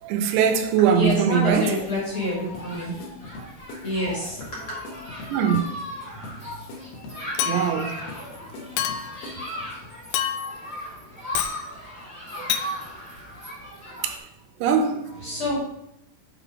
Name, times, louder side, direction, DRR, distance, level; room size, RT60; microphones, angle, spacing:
voice 1, 0.0-1.7 5.3-5.6 7.5-8.1 12.4-12.8 14.0-14.3 14.6-15.0, right 8 dB, 80° right, 2.9 m, -22 dB
voice 2, 0.8-2.9 3.8-4.8 15.1-15.6, left 2 dB, 50° left, 1.6 m, -27 dB
Human group actions, 1.5-14.2, equal, 5° left, 1.4 m, -38 dB
sound 1, 2.5-9.9, left 2 dB, 70° left, 2.6 m, -43 dB
Chink clink, 7.4-7.9 8.8-9.2 10.1-10.6 11.3-11.6 12.5-12.7, left 9 dB, 85° left, 2.9 m, -27 dB
7.6 x 3.9 x 4.7 m
omnidirectional pair, 5.1 m